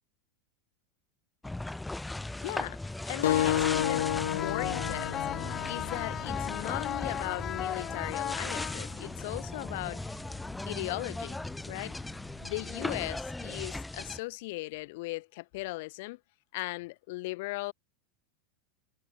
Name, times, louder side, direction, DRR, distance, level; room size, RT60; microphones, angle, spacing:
sound 1, 1.4-14.2, left 2 dB, 5° left, 1.2 m, -38 dB
voice 1, 2.4-5.3 5.6-10.2 10.7-11.4 11.7-12.0 12.4-16.2 16.5-17.7, left 22 dB, 65° left, 2.3 m, -38 dB
sound 2, 3.2-8.4, left 12 dB, 85° left, 1.3 m, -32 dB
sound 3, 3.2-9.2, left 10 dB, 30° left, 1.8 m, -36 dB
supercardioid pair, 125°, 0 cm